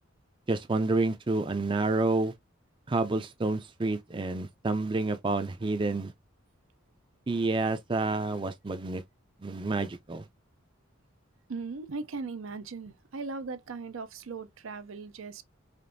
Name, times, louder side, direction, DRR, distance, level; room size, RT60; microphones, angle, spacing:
voice 1, 0.5-2.3 2.9-6.1 7.3-9.0 9.4-10.2, right 3 dB, 25° right, 0.5 m, -29 dB
voice 2, 11.5-15.4, right 4 dB, 80° right, 0.6 m, -38 dB
5.0 x 2.5 x 2.6 m
head